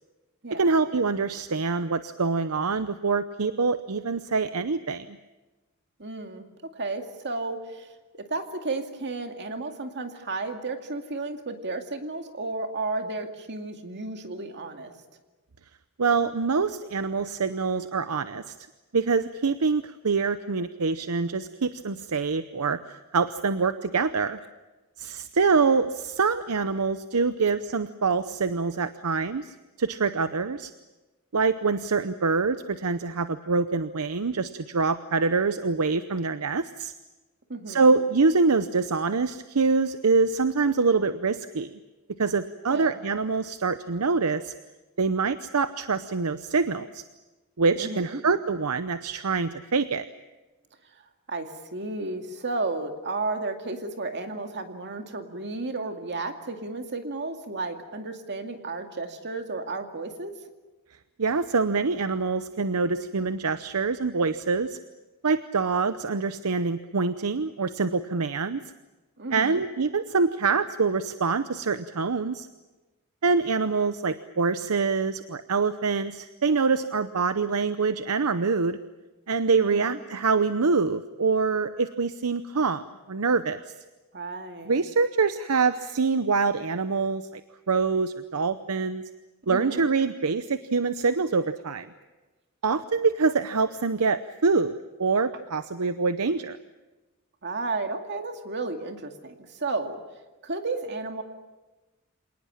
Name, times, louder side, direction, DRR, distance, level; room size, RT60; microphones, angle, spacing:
voice 1, 0.5-5.2 16.0-18.5 18.9-24.4 25.0-30.7 31.3-36.9 37.7-41.8 42.2-44.5 45.0-47.0 47.6-50.0 61.2-64.8 65.2-68.6 69.3-72.5 73.2-78.8 79.3-83.6 84.7-87.4 87.7-89.0 89.5-91.9 92.6-96.6, right 4 dB, 80° right, 11 dB, 0.8 m, -25 dB
voice 2, 6.0-14.9 37.5-38.0 42.6-43.0 47.8-48.2 51.0-60.3 69.2-69.6 79.6-80.0 84.1-84.7 89.5-89.9 97.4-100.0 100.4-101.2, right 3 dB, 50° right, 5 dB, 2.3 m, -33 dB
27.0 x 19.0 x 8.8 m, 1.2 s
head